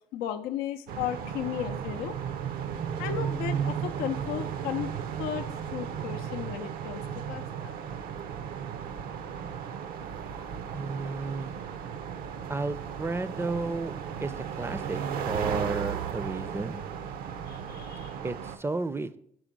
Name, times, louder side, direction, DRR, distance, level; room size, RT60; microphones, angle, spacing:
voice 1, 0.1-2.1 3.0-4.9 5.2-5.5 5.7-7.8 17.5-18.1, left 10 dB, 90° left, 7 dB, 0.4 m, -35 dB
sound 1, 0.9-18.6, right 8 dB, 75° right, 0.6 m, -35 dB
voice 2, 10.7-11.5 12.5-13.9 14.2-16.8 18.2-19.2, right 3 dB, 15° right, 14 dB, 0.4 m, -33 dB
6.2 x 4.2 x 5.2 m, 0.69 s
supercardioid pair, 75°, 15 cm